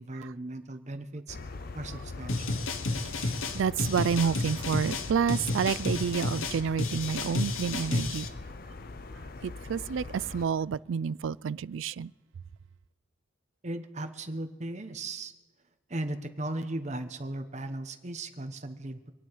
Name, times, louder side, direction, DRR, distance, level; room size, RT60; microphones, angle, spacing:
voice 1, 0.0-1.4 1.7-2.6 13.6-15.3 15.9-19.1, right 2 dB, 35° right, 1.0 m, -37 dB
sound 1, 1.3-10.5, left 3 dB, 45° left, 0.6 m, -42 dB
sound 2, 2.3-8.3, left 2 dB, 80° left, 1.1 m, -31 dB
voice 2, 3.2-8.3 9.4-10.0 10.3-12.1, right 6 dB, 70° right, 0.3 m, -29 dB
26.0 x 9.3 x 4.7 m
head